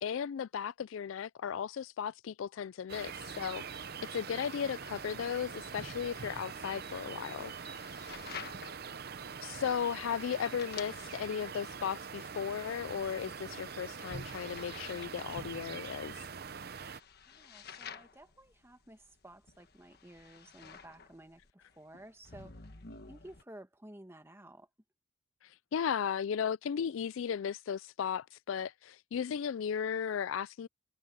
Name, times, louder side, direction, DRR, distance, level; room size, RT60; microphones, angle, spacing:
voice 1, 0.0-3.9 4.1-7.5 9.4-16.1 25.7-30.7, left 7 dB, 75° left, 0.4 m, -36 dB
sound 1, 2.9-17.0, right 6 dB, 50° right, 0.7 m, -44 dB
sound 2, 6.0-23.4, left 6 dB, 50° left, 1.4 m, -52 dB
voice 2, 17.3-22.7 23.1-24.7, right 1 dB, 10° right, 1.3 m, -54 dB
head